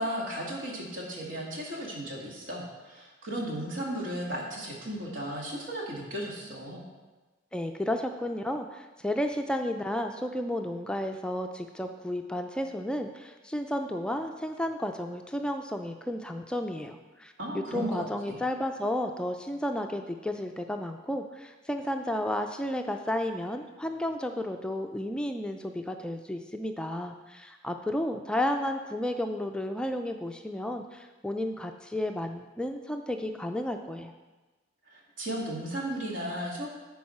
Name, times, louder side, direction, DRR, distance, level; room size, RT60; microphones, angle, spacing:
voice 1, 0.0-6.8 17.4-18.4 34.9-36.7, right 1 dB, 75° right, -2 dB, 1.8 m, -35 dB
voice 2, 7.5-34.1, left 1 dB, 5° left, 5 dB, 0.3 m, -32 dB
10.5 x 4.6 x 4.3 m, 1.2 s
head